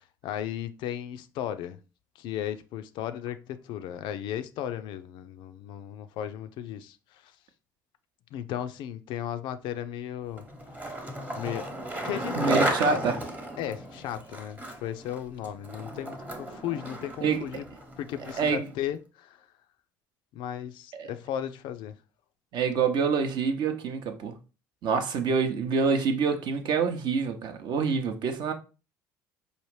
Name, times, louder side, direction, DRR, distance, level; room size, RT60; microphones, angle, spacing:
voice 1, 0.0-1.8 2.2-7.3 8.3-10.5 10.7-10.9 11.4-11.7 12.0-13.0 13.6-17.6 18.0-19.5 20.3-22.0, left 10 dB, 55° left, 0.4 m, -35 dB
Skateboard, 10.4-18.7, right 1 dB, 15° right, 0.9 m, -34 dB
voice 2, 12.4-13.2 17.2-17.4 18.4-18.7 20.9-21.1 22.5-24.3 24.8-28.5, right 5 dB, 50° right, 0.7 m, -26 dB
4.8 x 2.5 x 3.1 m
figure-of-eight pair, 60°, 10 cm